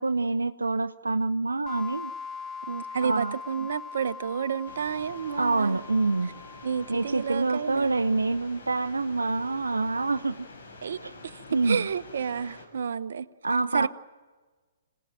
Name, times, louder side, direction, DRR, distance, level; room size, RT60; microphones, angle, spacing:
voice 1, 0.0-2.1 3.0-3.4 5.4-6.3 6.9-10.4 11.0-11.1 11.5-11.9 13.4-13.9, right 3 dB, 85° right, 0.7 m, -26 dB
sound 1, 1.7-8.2, left 5 dB, 20° left, 0.6 m, -42 dB
voice 2, 2.7-5.8 6.6-7.9 10.8-11.0 11.2-13.3 13.7-13.9, right 7 dB, 65° right, 0.9 m, -30 dB
sound 2, 4.6-12.7, left 3 dB, 65° left, 6.4 m, -47 dB
25.5 x 18.0 x 9.0 m
figure-of-eight pair, 125°, 0 cm